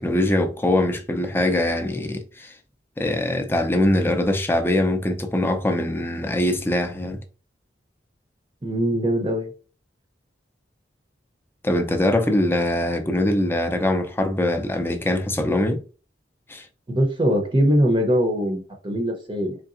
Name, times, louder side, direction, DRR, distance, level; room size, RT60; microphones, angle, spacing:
voice 1, 0.0-2.5 3.0-7.2 11.6-15.8 16.5-16.7, left 1 dB, 15° left, 0.5 m, -22 dB
voice 2, 8.6-9.5 16.9-19.6, equal, 25° right, 0.7 m, -22 dB
3.8 x 3.4 x 2.5 m
head